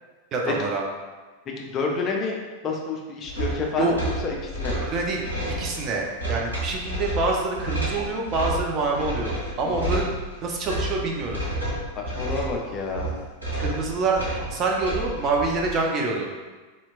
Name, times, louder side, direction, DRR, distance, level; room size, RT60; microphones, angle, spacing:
voice 1, 0.3-0.8 3.8-3.9 4.7-5.2 5.6-10.1 10.4-11.4 13.6-16.3, right 3 dB, 35° right, 0 dB, 0.6 m, -26 dB
voice 2, 1.6-2.4 2.6-4.8 9.6-9.9 12.0-13.1, left 4 dB, 30° left, 0 dB, 0.5 m, -29 dB
sound 1, 3.3-15.7, right 1 dB, 80° right, 1.5 m, -30 dB
4.1 x 3.0 x 2.4 m, 1.3 s
figure-of-eight pair, 90°, 0 cm